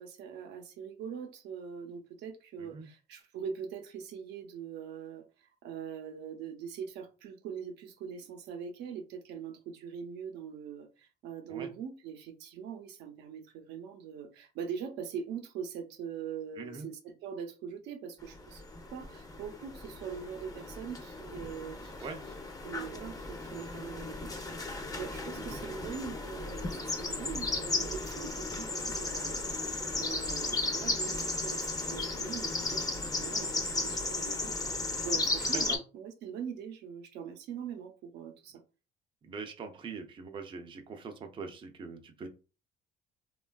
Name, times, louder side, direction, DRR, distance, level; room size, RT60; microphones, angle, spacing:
voice 1, 0.0-18.6 18.9-22.1 22.6-34.5 35.0-38.6, right 7 dB, 85° right, 0.6 m, -42 dB
voice 2, 16.6-16.9 22.0-22.2 25.3-25.6 35.5-35.8 39.2-42.3, right 4 dB, 30° right, 0.4 m, -43 dB
sound 1, 18.3-35.8, left 2 dB, 20° left, 0.6 m, -35 dB
3.1 x 2.3 x 2.2 m
cardioid pair, 110°, 17 cm